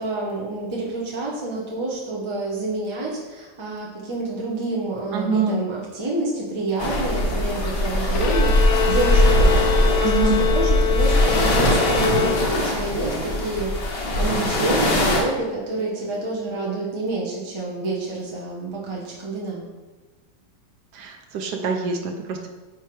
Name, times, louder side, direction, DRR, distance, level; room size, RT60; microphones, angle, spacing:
voice 1, 0.0-19.6, right 2 dB, 25° right, -5 dB, 0.6 m, -28 dB
voice 2, 5.1-5.6 10.0-10.4 20.9-22.5, right 4 dB, 65° right, 4 dB, 1.2 m, -25 dB
sound 1, 6.8-15.2, left 1 dB, 45° left, 1.6 m, -20 dB
Bowed string instrument, 8.1-12.9, left 7 dB, 80° left, 1.5 m, -25 dB
9.0 x 3.2 x 4.6 m, 1.2 s
omnidirectional pair, 2.2 m